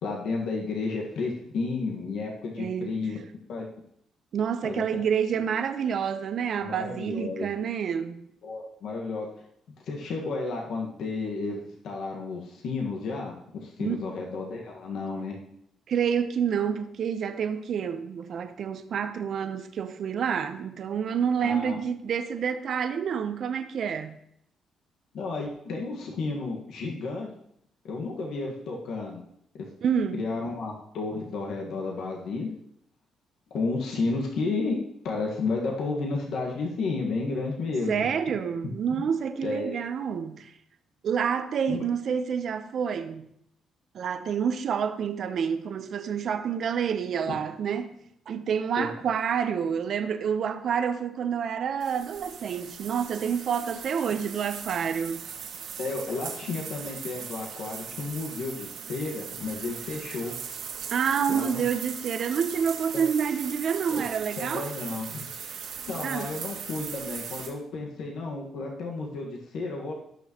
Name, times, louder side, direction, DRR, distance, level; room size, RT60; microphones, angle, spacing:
voice 1, 0.0-3.2 3.5-3.7 4.6-5.1 5.3-5.4 6.6-7.5 8.4-9.3 9.9-13.3 13.6-15.3 21.4-21.8 25.1-27.3 27.8-29.2 30.1-32.5 33.5-34.8 35.0-38.0 39.4-39.8 41.7-41.8 47.3-47.4 48.8-48.9 55.8-60.3 61.3-61.6 62.9-63.0 63.9-64.0 64.4-65.3 65.9-69.9, left 3 dB, 75° left, 1.6 m, -32 dB
voice 2, 2.6-3.0 4.3-8.3 13.8-14.1 15.9-24.2 29.8-30.2 37.9-40.5 41.0-43.3 43.9-47.9 48.3-55.2 60.9-64.7 66.0-66.3, right 7 dB, 60° right, 0.8 m, -28 dB
sound 1, 51.8-67.5, right 7 dB, 85° right, 2.4 m, -39 dB
17.5 x 6.2 x 3.0 m
cardioid pair, 90°, 0 cm